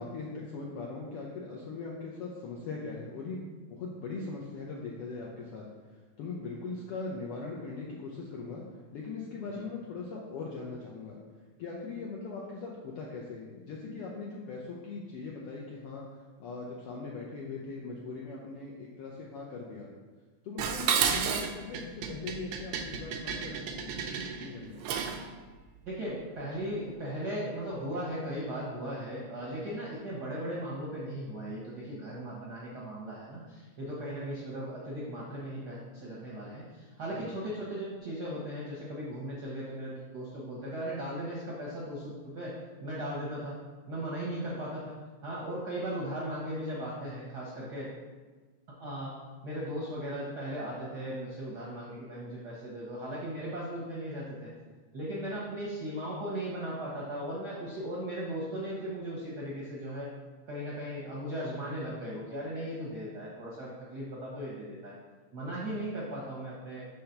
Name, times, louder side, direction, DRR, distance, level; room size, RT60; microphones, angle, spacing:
voice 1, 0.0-5.6 5.9-8.6 8.9-11.2 11.6-19.9 20.4-24.1 24.4-24.8 37.2-37.3, left 4 dB, 75° left, -3 dB, 1.3 m, -40 dB
Dishes pots and pans, 20.6-25.3, right 7 dB, 90° right, 1.3 m, -32 dB
voice 2, 25.8-42.5 42.8-43.6 43.9-45.0 45.2-47.9 48.8-49.1 49.4-54.5 54.9-60.1 60.5-64.9 65.3-66.9, equal, 70° right, -6 dB, 0.9 m, -37 dB
5.6 x 3.3 x 5.7 m, 1.3 s
omnidirectional pair, 3.3 m